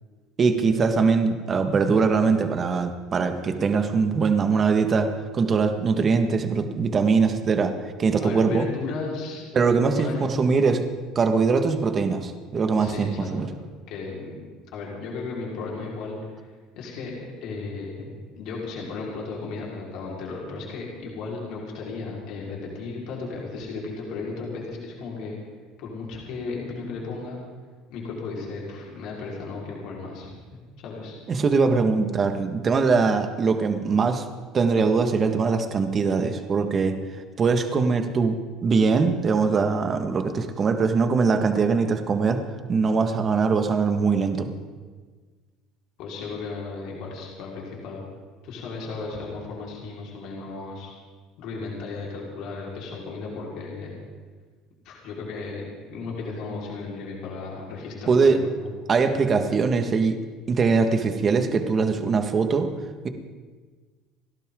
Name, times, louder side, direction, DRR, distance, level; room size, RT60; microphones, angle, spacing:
voice 1, 0.4-7.7 8.0-8.7 9.5-10.8 11.1-13.5 31.3-34.2 34.5-37.0 37.4-38.4 38.6-42.4 42.7-44.5 58.1-58.4 58.9-60.2 60.5-62.7, right 4 dB, 35° right, 7 dB, 1.7 m, -22 dB
voice 2, 8.2-9.4 9.9-10.2 12.8-13.5 13.9-14.4 14.7-16.4 16.7-17.1 17.4-18.1 18.3-25.3 25.8-27.4 27.9-30.3 30.8-31.2 46.0-48.0 48.4-50.9 51.4-53.9 54.8-58.7, left 4 dB, 65° left, -3 dB, 4.6 m, -35 dB
30.0 x 12.0 x 3.9 m, 1.5 s
supercardioid pair, 105°, 0 cm